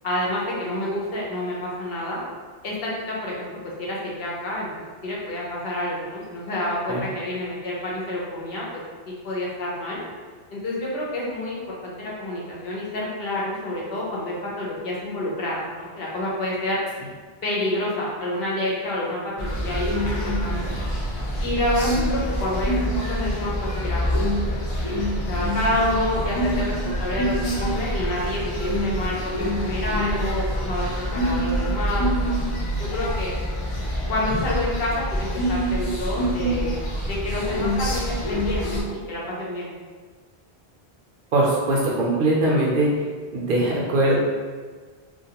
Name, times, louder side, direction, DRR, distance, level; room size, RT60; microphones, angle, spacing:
voice 1, 0.0-2.2 2.6-3.5 3.8-4.7 5.0-8.8 9.1-10.0 10.5-16.8 17.4-20.7 21.4-32.4 32.8-33.3 34.1-39.7, left 1 dB, 65° left, -5 dB, 0.9 m, -28 dB
sound 1, 19.4-38.8, equal, 50° left, 0.4 m, -26 dB
voice 2, 41.3-42.9 43.3-44.2, right 2 dB, 60° right, -4 dB, 0.7 m, -21 dB
2.4 x 2.3 x 2.8 m, 1.5 s
omnidirectional pair, 1.1 m